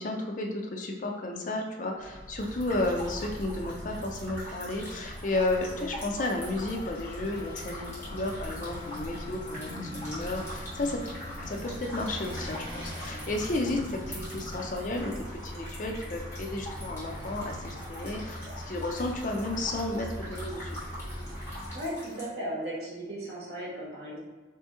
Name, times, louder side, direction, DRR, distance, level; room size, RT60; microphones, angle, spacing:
voice 1, 0.0-11.0 11.5-20.8, left 2 dB, 40° left, 1 dB, 0.4 m, -33 dB
Vehicle, 2.0-21.8, equal, 10° right, 1.2 m, -41 dB
sound 1, 2.4-22.3, equal, 15° left, 1.3 m, -44 dB
sound 2, 6.5-11.5, left 9 dB, 70° left, 0.8 m, -50 dB
voice 2, 21.7-24.2, equal, 55° right, -5 dB, 1.2 m, -36 dB
3.5 x 2.7 x 3.6 m, 1.3 s
head